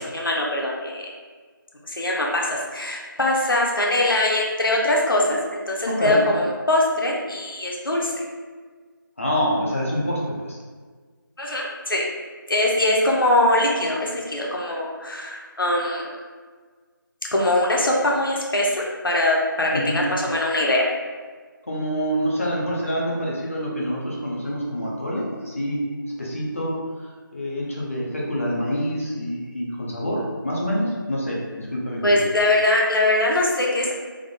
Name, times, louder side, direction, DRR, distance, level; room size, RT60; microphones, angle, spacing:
voice 1, 0.1-1.0 1.8-8.1 11.4-12.1 12.5-16.1 17.3-20.9 32.0-33.9, left 1 dB, 75° left, -2 dB, 0.8 m, -22 dB
voice 2, 5.9-6.2 9.2-10.6 19.7-20.0 21.7-25.8 26.2-26.7 27.3-32.2, equal, 40° left, -4 dB, 0.7 m, -26 dB
3.5 x 2.0 x 3.6 m, 1.5 s
figure-of-eight pair, 175°, 12 cm